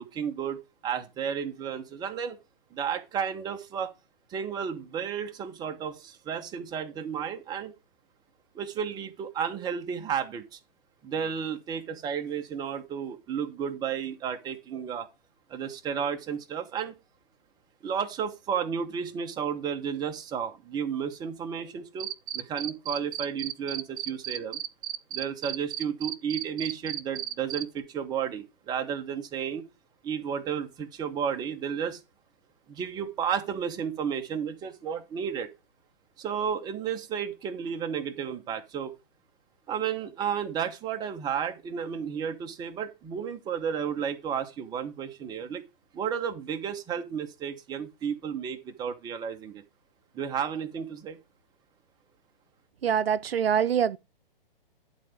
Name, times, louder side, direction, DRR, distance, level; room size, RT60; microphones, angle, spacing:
voice 1, 0.0-2.4 2.7-3.9 4.3-7.7 8.5-10.6 11.0-15.1 15.5-16.9 17.8-24.6 25.1-29.6 30.0-32.0 32.7-35.5 36.2-38.9 39.7-45.6 45.9-49.6 50.1-51.2, right 7 dB, 15° right, 0.9 m, -32 dB
Cricket, 22.0-27.6, right 12 dB, 40° right, 0.5 m, -33 dB
voice 2, 52.8-54.0, right 8 dB, 90° right, 0.5 m, -24 dB
10.5 x 4.0 x 4.9 m
hypercardioid pair, 135°, 29 cm